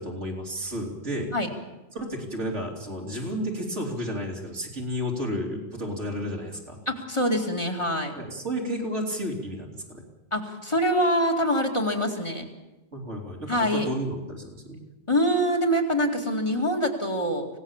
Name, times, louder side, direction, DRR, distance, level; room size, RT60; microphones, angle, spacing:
voice 1, 0.0-1.3 1.9-6.8 8.1-10.1 12.9-14.8, equal, 80° right, 0 dB, 3.6 m, -32 dB
voice 2, 6.9-8.1 10.3-12.4 13.5-13.9 15.1-17.5, equal, 25° left, 2 dB, 2.3 m, -24 dB
25.0 x 17.0 x 7.3 m, 1.0 s
omnidirectional pair, 1.2 m